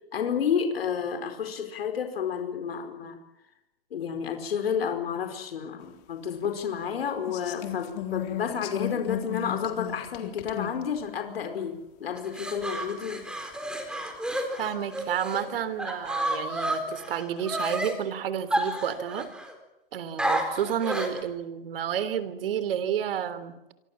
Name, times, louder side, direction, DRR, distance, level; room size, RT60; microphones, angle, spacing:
voice 1, 0.1-3.2 3.9-13.2, left 7 dB, 90° left, 6 dB, 4.8 m, -30 dB
sound 1, 6.4-6.5 7.2-10.8 11.6-11.7 12.4-12.5 13.1-13.2 13.9-14.0 14.6-14.7 15.4-16.2 16.7-17.0, left 12 dB, 45° left, 3.8 m, -35 dB
sound 2, 12.2-15.4 15.8-17.9 18.5-19.5 20.2-21.2, right 1 dB, 5° right, 4.4 m, -30 dB
voice 2, 14.6-19.3 19.9-23.5, right 9 dB, 70° right, 14 dB, 3.5 m, -30 dB
26.5 x 25.0 x 7.5 m, 0.93 s
hypercardioid pair, 145°, 29 cm